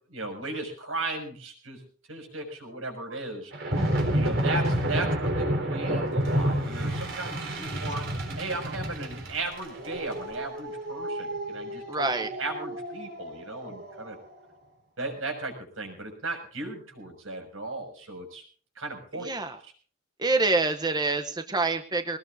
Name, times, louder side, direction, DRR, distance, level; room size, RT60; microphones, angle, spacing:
voice 1, 0.1-1.8 2.1-3.5 4.1-8.1 8.4-14.2 15.0-18.4 18.7-19.7, right 2 dB, 80° right, 3 dB, 6.5 m, -36 dB
sound 1, 3.5-14.1, right 1 dB, 65° right, 4.3 m, -30 dB
voice 2, 11.9-12.3 19.2-19.6 20.2-22.2, right 3 dB, 20° right, 8 dB, 0.8 m, -26 dB
22.0 x 19.5 x 2.7 m, 0.41 s
head